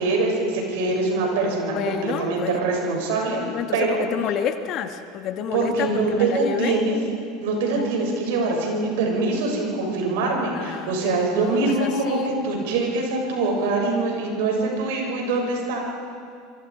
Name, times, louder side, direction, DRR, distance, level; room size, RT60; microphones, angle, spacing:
voice 1, 0.0-3.4 3.7-4.0 5.5-6.9 7.4-15.9, right 3 dB, 75° right, 0 dB, 6.8 m, -24 dB
voice 2, 1.7-2.6 3.3-6.8 10.5-12.3, left 8 dB, 50° left, 7 dB, 1.7 m, -29 dB
27.0 x 23.5 x 5.0 m, 2.3 s
hypercardioid pair, 90°, 0 cm